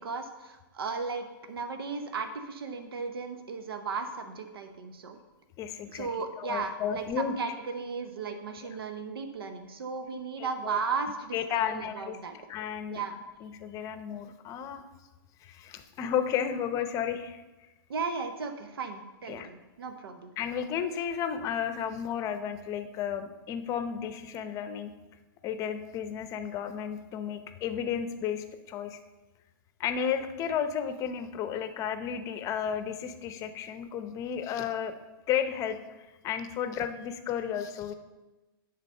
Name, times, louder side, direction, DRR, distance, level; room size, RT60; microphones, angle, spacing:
voice 1, 0.0-5.2 5.9-12.3 12.9-13.2 17.9-20.3, right 5 dB, 85° right, 7 dB, 0.9 m, -35 dB
voice 2, 5.6-6.1 6.4-7.3 10.4-10.8 11.3-12.2 12.5-13.0 13.4-14.8 15.4-17.4 19.3-19.5 20.4-24.9 25.4-29.0 29.8-34.9 35.3-37.9, left 8 dB, 25° left, 10 dB, 0.7 m, -33 dB
9.8 x 3.9 x 6.5 m, 1.1 s
hypercardioid pair, 140°, 12 cm